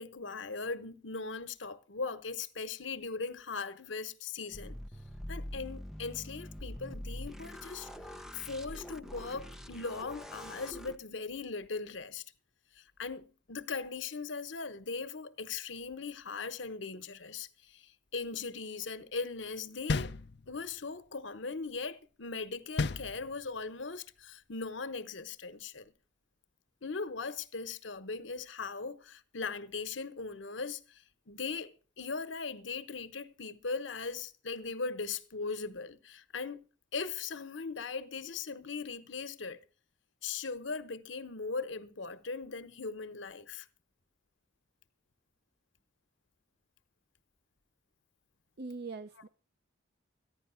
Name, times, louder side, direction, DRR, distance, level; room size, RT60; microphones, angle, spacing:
voice 1, 0.0-4.8 5.3-7.9 8.3-12.2 12.7-20.1 20.5-25.9 26.8-36.6 36.9-39.6 40.2-43.7, left 4 dB, 85° left, 1.1 m, -39 dB
sound 1, 4.5-11.0, equal, 5° right, 0.8 m, -44 dB
sound 2, 19.9-20.8 22.8-23.7, left 3 dB, 65° left, 0.6 m, -33 dB
voice 2, 48.6-49.3, right 3 dB, 60° right, 0.7 m, -41 dB
15.0 x 10.5 x 5.7 m
head